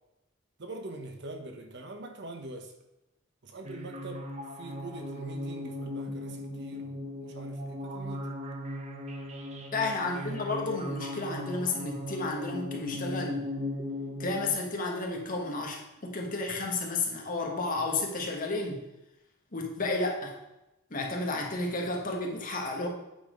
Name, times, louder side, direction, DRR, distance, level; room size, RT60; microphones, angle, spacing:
voice 1, 0.6-2.7 3.4-8.3 9.9-10.4 22.8-22.9, right 2 dB, 60° right, 5 dB, 1.0 m, -44 dB
sound 1, 3.6-14.5, left 1 dB, 35° right, 0.8 m, -38 dB
voice 2, 9.7-13.4 14.2-18.8 19.5-20.4 20.9-22.9, left 3 dB, 45° left, 1 dB, 1.4 m, -32 dB
8.6 x 4.1 x 5.1 m, 0.94 s
head